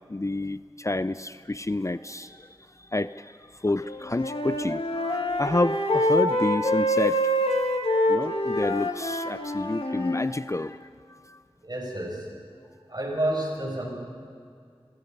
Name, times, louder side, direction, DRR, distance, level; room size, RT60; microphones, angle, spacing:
voice 1, 0.1-2.5 2.9-3.3 3.6-7.2 8.1-10.9 11.3-11.4, left 2 dB, 30° left, 13 dB, 0.5 m, -29 dB
Wind instrument woodwind instrument, 3.9-10.3, left 1 dB, 65° left, 2.0 m, -26 dB
voice 2, 11.6-12.3 12.9-13.9, right 1 dB, 45° right, 0 dB, 6.6 m, -29 dB
29.5 x 21.5 x 5.4 m, 2.2 s
wide cardioid pair, 40°, 10 cm